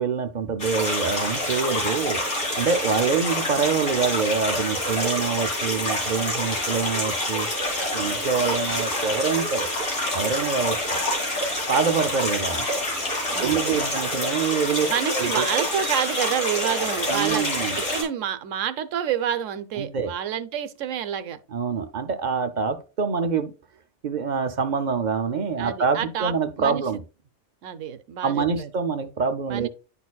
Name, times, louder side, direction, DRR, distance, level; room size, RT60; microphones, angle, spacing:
voice 1, 0.0-2.2 2.6-7.5 7.9-9.7 10.1-10.8 11.7-12.7 13.4-15.5 17.1-17.8 19.8-20.1 21.5-23.5 24.0-27.0 28.2-29.7, right 5 dB, 50° right, 0.5 m, -25 dB
sound 1, 0.6-18.0, left 1 dB, 85° left, 2.7 m, -27 dB
voice 2, 13.3-13.9 14.9-17.5 17.7-21.4 25.6-26.8 27.6-28.7 29.5-29.7, right 9 dB, 85° right, 1.0 m, -28 dB
10.5 x 4.2 x 2.3 m
omnidirectional pair, 1.3 m